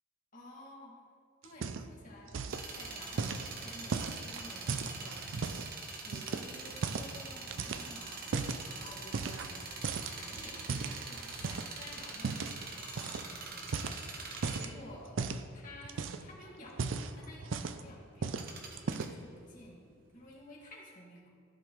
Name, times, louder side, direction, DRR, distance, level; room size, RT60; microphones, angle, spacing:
voice 1, 0.3-0.9 1.4-2.3 2.6-5.5 6.0-8.3 8.7-9.7 10.2-14.2 14.5-15.2 15.5-18.5 19.0-21.3, left 1 dB, 40° left, -4 dB, 2.2 m, -52 dB
sound 1, 1.4-2.0 2.3-2.7 3.2-5.7 6.1-7.2 7.5-8.6 9.1-9.6 9.8-11.7 12.2-12.6 13.0-13.2 13.6-14.7 15.2-15.5 15.8-16.3 16.7-17.9 18.2-18.5 18.8-19.2, right 5 dB, 70° right, 0.4 m, -36 dB
sound 2, 2.5-20.0 20.3-20.4, right 3 dB, 50° right, 1.0 m, -45 dB
15.0 x 5.1 x 3.2 m, 2.1 s
head